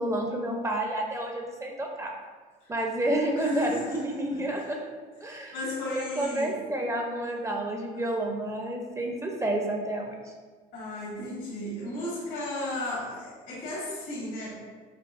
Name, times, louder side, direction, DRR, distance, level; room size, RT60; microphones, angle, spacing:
voice 1, 0.0-2.1 2.7-4.8 5.2-5.5 6.0-10.3, right 1 dB, 15° right, 1 dB, 0.4 m, -30 dB
voice 2, 3.4-4.7 5.2-6.6 10.7-14.7, left 1 dB, 85° left, -6 dB, 1.5 m, -35 dB
5.1 x 2.4 x 2.4 m, 1.4 s
cardioid pair, 110°, 17 cm